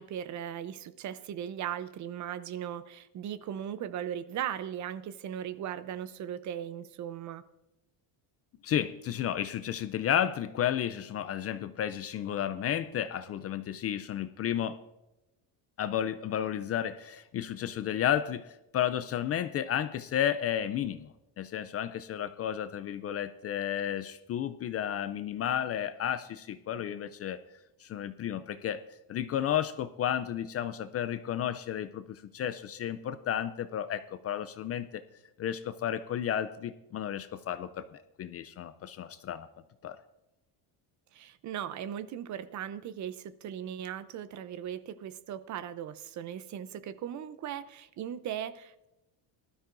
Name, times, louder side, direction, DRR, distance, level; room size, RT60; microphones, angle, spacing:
voice 1, 0.0-7.4 41.1-48.9, right 10 dB, 40° right, 15 dB, 0.6 m, -38 dB
voice 2, 8.6-14.8 15.8-21.1 21.4-27.4 27.8-28.8 29.1-35.0 35.4-39.5 39.8-40.0, left 10 dB, 35° left, 12 dB, 0.4 m, -32 dB
19.0 x 12.5 x 2.5 m, 0.98 s
cardioid pair, 140°, 45 cm